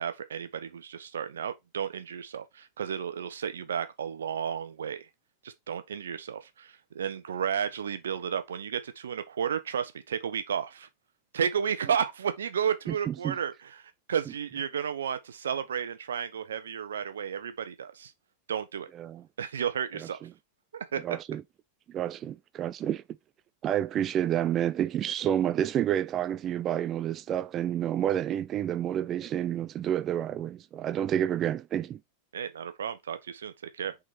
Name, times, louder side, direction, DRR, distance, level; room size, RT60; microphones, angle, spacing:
voice 1, 0.0-5.1 5.4-10.9 11.3-13.8 14.1-18.1 18.5-18.9 19.4-20.2 20.7-21.0 32.3-33.9, right 8 dB, 65° right, 1.0 m, -32 dB
voice 2, 12.9-13.4 18.9-19.2 19.9-20.3 21.0-21.4 21.9-23.0 23.6-32.0, right 10 dB, 30° right, 0.4 m, -29 dB
6.1 x 3.9 x 4.2 m
figure-of-eight pair, 90°, 0 cm